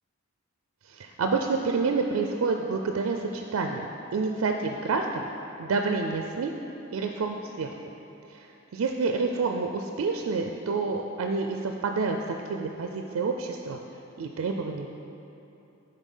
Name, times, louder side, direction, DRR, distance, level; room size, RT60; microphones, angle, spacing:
voice 1, 0.9-3.9 4.1-5.3 5.6-6.5 6.9-7.7 8.3-8.4 8.7-13.8 14.2-14.9, right 4 dB, 90° right, 3 dB, 0.4 m, -28 dB
7.2 x 4.0 x 5.4 m, 3.0 s
head